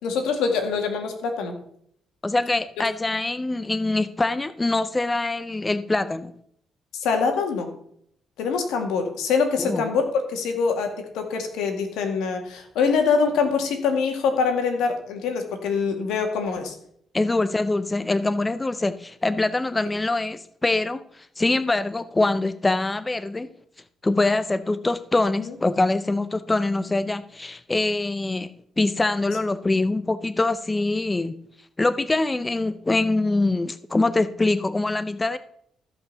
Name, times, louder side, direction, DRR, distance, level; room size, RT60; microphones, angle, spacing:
voice 1, 0.0-1.5 6.9-7.7 8.4-16.7 25.4-25.5, left 5 dB, 90° left, 5 dB, 2.2 m, -24 dB
voice 2, 2.2-6.3 9.6-9.9 17.1-23.5 24.0-28.5 28.8-31.3 31.8-35.4, left 2 dB, 20° left, 13 dB, 0.6 m, -24 dB
14.5 x 5.4 x 6.8 m, 0.68 s
cardioid pair, 90°, 0 cm